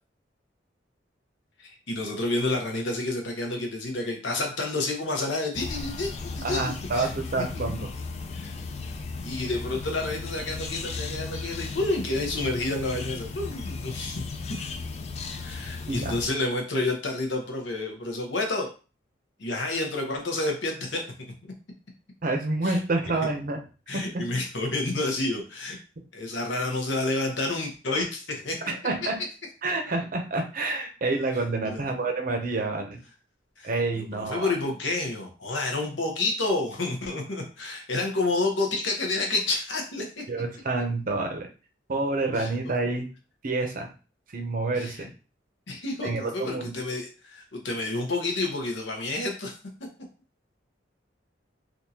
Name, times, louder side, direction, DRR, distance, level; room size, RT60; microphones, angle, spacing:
voice 1, 1.6-7.1 7.4-7.5 8.3-8.5 9.2-14.2 15.4-18.7 19.4-21.0 21.4-21.5 22.6-22.8 23.9-25.8 26.1-28.6 31.6-31.8 33.6-40.2 42.3-42.5 44.7-45.1 45.7-49.6, left 2 dB, 75° left, 2 dB, 0.9 m, -29 dB
sound 1, 5.5-16.3, left 4 dB, 35° left, 0.4 m, -36 dB
voice 2, 6.4-7.9 15.9-16.1 22.2-23.6 23.9-24.2 28.7-29.1 29.6-33.0 33.6-34.5 40.3-41.5 41.9-43.1 43.4-43.9 44.3-45.1 46.0-46.7, right 3 dB, 50° right, 4 dB, 0.7 m, -28 dB
3.5 x 2.6 x 2.8 m, 0.35 s
head